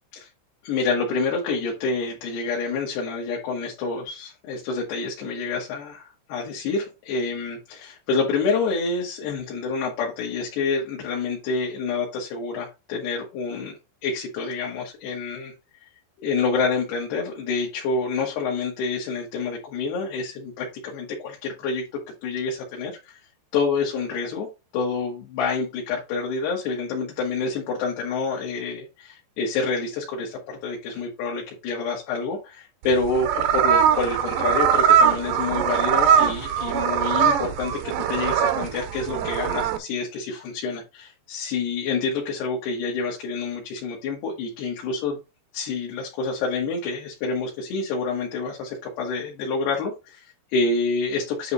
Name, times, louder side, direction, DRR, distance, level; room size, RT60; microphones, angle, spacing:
voice 1, 0.6-13.8 14.0-15.5 16.2-21.9 22.2-23.2 23.5-24.5 24.7-45.2 45.5-51.5, left 4 dB, 75° left, -1 dB, 3.7 m, -28 dB
sound 1, 32.8-39.8, right 8 dB, 85° right, 1.9 m, -21 dB
9.5 x 3.4 x 4.1 m, 0.27 s
omnidirectional pair, 4.8 m